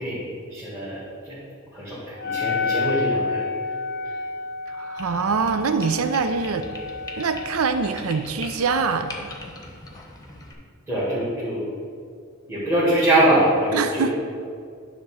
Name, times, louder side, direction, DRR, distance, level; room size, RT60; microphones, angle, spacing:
voice 1, 0.0-1.4 1.7-3.4 10.9-11.6 12.5-14.1, right 1 dB, 10° right, -9 dB, 1.7 m, -23 dB
Wind instrument woodwind instrument, 2.2-7.9, left 4 dB, 50° left, 0.4 m, -30 dB
voice 2, 4.7-6.7 7.2-9.3 13.7-14.2, right 5 dB, 80° right, 9 dB, 0.5 m, -24 dB
sound 1, 5.0-10.5, left 2 dB, 20° left, 1.0 m, -41 dB
10.0 x 3.5 x 6.2 m, 2.3 s
head